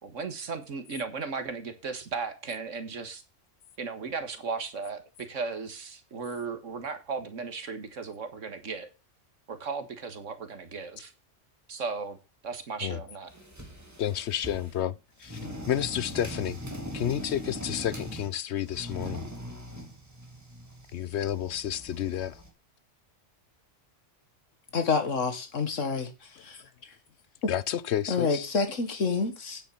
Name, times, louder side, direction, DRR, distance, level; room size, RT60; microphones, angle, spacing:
voice 1, 0.0-3.2 3.8-8.9 9.5-11.1 11.7-12.2 12.4-13.3, right 4 dB, 85° right, 1.9 m, -36 dB
sound 1, 13.3-14.8 15.2-18.3 18.6-22.5, equal, 15° right, 2.6 m, -41 dB
voice 2, 14.0-14.9 15.2-15.4 15.7-16.6 16.9-19.2 20.9-22.4 27.5-28.5, left 10 dB, 65° left, 1.0 m, -30 dB
voice 3, 24.7-26.1 26.4-26.6 28.1-29.6, left 4 dB, 85° left, 2.1 m, -28 dB
9.5 x 8.2 x 5.6 m
omnidirectional pair, 1.3 m